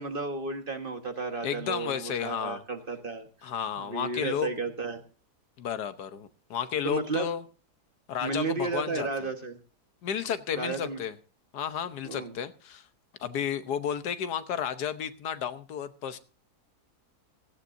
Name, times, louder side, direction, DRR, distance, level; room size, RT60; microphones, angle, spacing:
voice 1, 0.0-3.5 3.8-5.0 6.8-7.3 8.2-9.6 10.6-11.0 12.0-12.4, right 3 dB, 35° right, 6 dB, 1.5 m, -33 dB
voice 2, 1.4-2.6 3.4-4.5 5.6-7.4 8.1-9.1 10.0-11.1 11.5-12.9 13.2-16.2, left 8 dB, 85° left, 12 dB, 1.5 m, -32 dB
16.5 x 15.5 x 2.6 m, 0.36 s
omnidirectional pair, 1.7 m